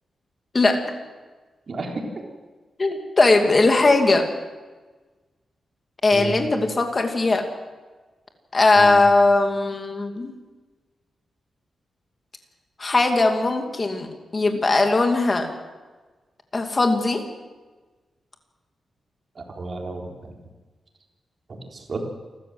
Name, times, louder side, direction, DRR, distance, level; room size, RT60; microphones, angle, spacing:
voice 1, 1.7-2.2 6.1-6.5 8.7-9.0 19.4-20.4 21.7-22.0, right 2 dB, 40° right, 0 dB, 3.9 m, -32 dB
voice 2, 2.8-4.2 6.0-7.4 8.5-10.3 12.8-14.1 14.3-15.5 16.5-17.2, left 2 dB, 25° left, 4 dB, 2.5 m, -19 dB
28.5 x 13.5 x 7.8 m, 1.3 s
wide cardioid pair, 170°, 0 cm